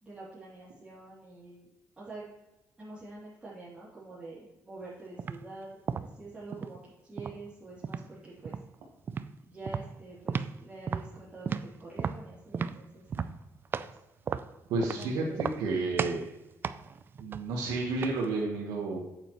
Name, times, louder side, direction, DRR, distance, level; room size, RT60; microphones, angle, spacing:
voice 1, 0.0-1.7 2.0-2.2 2.8-8.6 9.4-11.5 11.8-13.0 14.8-15.7, right 2 dB, 15° right, -11 dB, 2.8 m, -46 dB
sound 1, 5.2-5.4 5.9-6.8 7.2-8.1 8.4-8.7 9.1-9.3 9.7-10.6 10.9-14.0 14.3-15.1 15.4-15.7 16.0-16.3 16.6-18.3, right 6 dB, 35° right, 0.3 m, -34 dB
voice 2, 14.7-16.2 17.2-19.0, right 3 dB, 90° right, -3 dB, 1.3 m, -31 dB
8.5 x 8.2 x 3.1 m, 1.0 s
cardioid pair, 135°, 6 cm